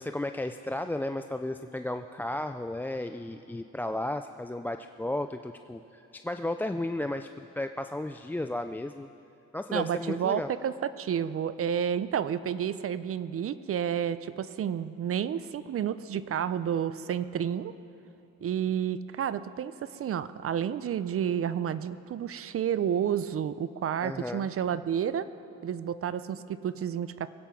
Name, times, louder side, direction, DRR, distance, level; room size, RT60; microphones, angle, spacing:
voice 1, 0.0-9.1 9.5-10.5 24.0-24.5, left 1 dB, 5° left, 7 dB, 0.3 m, -34 dB
voice 2, 9.7-17.7 18.4-25.3 25.6-27.3, right 9 dB, 50° right, 15 dB, 0.5 m, -30 dB
21.5 x 8.9 x 5.8 m, 2.9 s
cardioid pair, 90°, 30 cm